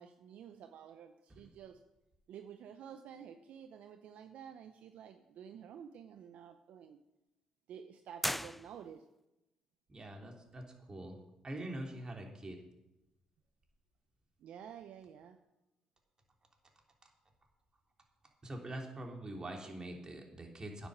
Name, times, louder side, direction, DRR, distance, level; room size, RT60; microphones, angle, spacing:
voice 1, 0.0-1.8 2.3-7.0 7.7-9.0 14.4-15.4, right 8 dB, 65° right, 7 dB, 0.7 m, -51 dB
sound 1, 8.2-9.2, left 1 dB, 5° left, 0.3 m, -38 dB
voice 2, 9.9-11.2 11.4-12.6 18.4-20.9, right 1 dB, 30° right, 2 dB, 3.1 m, -44 dB
9.8 x 8.9 x 6.7 m, 0.92 s
hypercardioid pair, 55°, 2 cm